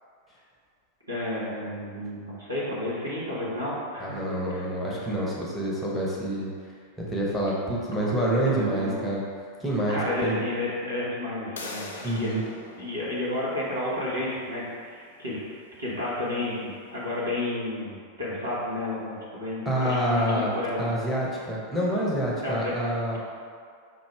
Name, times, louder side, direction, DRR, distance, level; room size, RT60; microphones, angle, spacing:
voice 1, 1.0-4.1 4.5-5.0 8.5-9.1 9.9-12.4 12.8-15.4 15.8-20.9 22.4-22.7, left 1 dB, 80° right, -8 dB, 1.3 m, -31 dB
voice 2, 4.0-6.5 7.1-9.2 9.6-10.4 12.0-12.4 19.6-23.2, right 1 dB, 10° left, -5 dB, 1.0 m, -27 dB
sound 1, 11.6-17.1, left 3 dB, 65° left, 0.5 m, -45 dB
5.4 x 2.7 x 3.4 m, 2.1 s
figure-of-eight pair, 90°, 0 cm